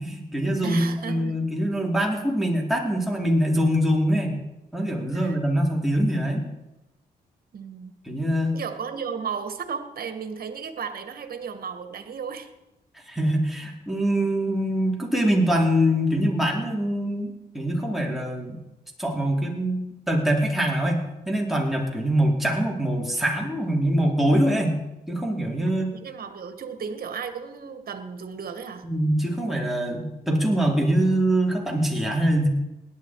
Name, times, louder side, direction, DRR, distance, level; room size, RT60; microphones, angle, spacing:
voice 1, 0.0-4.4 4.7-6.4 8.0-8.6 13.1-18.6 19.0-19.8 20.1-24.8 25.1-25.9 28.8-32.5, equal, ahead, -2 dB, 4.3 m, -23 dB
voice 2, 0.6-1.3 5.1-5.4 7.5-7.9 8.5-12.5 25.9-28.9, right 6 dB, 60° right, 8 dB, 1.8 m, -34 dB
18.0 x 11.0 x 4.9 m, 0.94 s
cardioid pair, 70°, 17 cm